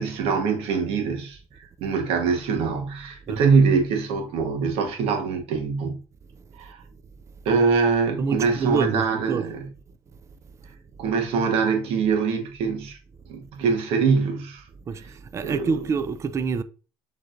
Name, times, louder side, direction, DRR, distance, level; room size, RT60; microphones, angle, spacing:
voice 1, 0.0-6.0 6.6-6.8 7.4-9.7 11.0-13.0 13.3-14.7 15.0-15.1 15.4-15.8, right 5 dB, 75° right, 1.2 m, -23 dB
voice 2, 8.2-9.4 14.9-16.6, right 5 dB, 30° right, 0.4 m, -27 dB
6.6 x 3.2 x 2.5 m
cardioid pair, 110°, 10 cm